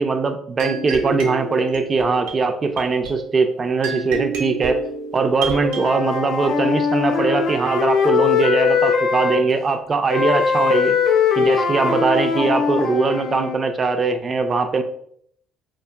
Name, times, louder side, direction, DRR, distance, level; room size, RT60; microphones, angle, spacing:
voice 1, 0.0-4.8 5.1-11.0 11.4-14.8, right 4 dB, 35° right, 7 dB, 0.4 m, -21 dB
sound 1, 0.6-5.8, right 4 dB, 80° right, 0.6 m, -29 dB
Wind instrument woodwind instrument, 5.5-9.4 10.1-13.6, left 6 dB, 65° left, 0.5 m, -20 dB
3.4 x 2.4 x 2.2 m, 0.64 s
hypercardioid pair, 60°, 0 cm